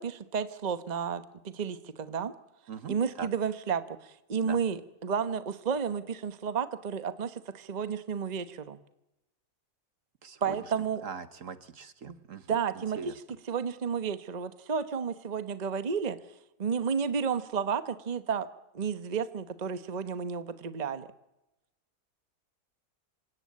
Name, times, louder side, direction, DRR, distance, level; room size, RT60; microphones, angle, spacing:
voice 1, 0.0-2.3 2.9-8.8 10.4-11.0 12.1-12.2 12.5-16.2 16.6-18.5 18.7-21.1, right 6 dB, 30° right, 12 dB, 1.0 m, -32 dB
voice 2, 2.7-3.3 4.4-4.6 10.2-10.6 11.0-12.4 13.0-13.1, right 6 dB, 55° right, 12 dB, 1.3 m, -41 dB
27.5 x 16.5 x 8.6 m, 0.94 s
omnidirectional pair, 1.7 m